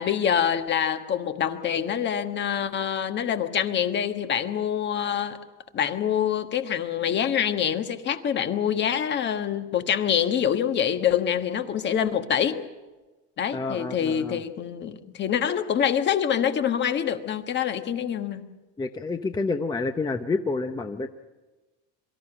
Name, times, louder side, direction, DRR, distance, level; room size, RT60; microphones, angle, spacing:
voice 1, 0.0-5.4 5.7-12.6 13.4-18.4, left 9 dB, 40° left, 8 dB, 1.4 m, -25 dB
voice 2, 13.5-14.4 18.8-21.1, left 3 dB, 15° left, 7 dB, 0.8 m, -29 dB
23.5 x 13.5 x 9.9 m, 1.2 s
cardioid pair, 135°, 29 cm